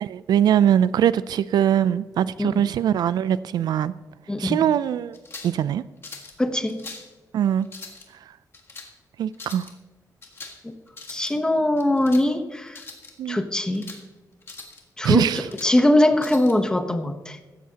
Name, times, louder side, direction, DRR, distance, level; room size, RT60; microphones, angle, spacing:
voice 1, 0.0-3.9 4.4-5.2 5.4-5.8 7.3-7.7 9.2-9.7 13.2-13.4 15.0-15.5, right 10 dB, 75° right, 0.4 m, -21 dB
voice 2, 4.3-4.6 6.4-6.8 10.6-10.7 11.1-12.8 13.3-13.9 15.0-15.2 15.6-17.4, left 1 dB, 10° left, 0.9 m, -21 dB
sound 1, 5.1-5.6 6.0-6.4 6.7-7.1 7.6-8.1 8.5-8.9 9.3-9.7 10.2-10.6 10.9-11.3 11.8-12.3 12.7-13.1 13.5-14.0 14.4-14.8 15.2-15.7 16.2-16.5, left 3 dB, 35° left, 1.6 m, -41 dB
15.5 x 13.0 x 2.9 m
wide cardioid pair, 155°, 7 cm